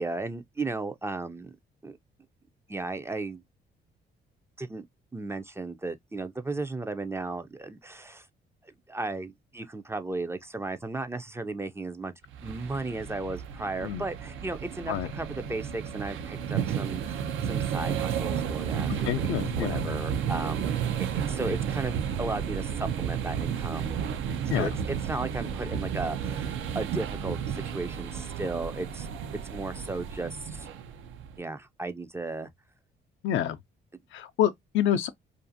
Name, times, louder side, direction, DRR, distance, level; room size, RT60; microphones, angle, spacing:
voice 1, 0.0-1.6 1.8-2.0 2.7-3.4 4.6-4.9 5.1-8.3 8.6-12.1 12.4-24.0 24.4-29.1 29.5-30.7 31.4-32.5, right 2 dB, 15° right, 0.4 m, -35 dB
sound 1, 12.3-31.4, right 8 dB, 80° right, 0.5 m, -32 dB
voice 2, 19.0-20.0 24.5-24.7 33.2-33.6 34.1-35.1, left 11 dB, 80° left, 0.4 m, -27 dB
2.5 x 2.4 x 2.5 m
cardioid pair, 90°, 20 cm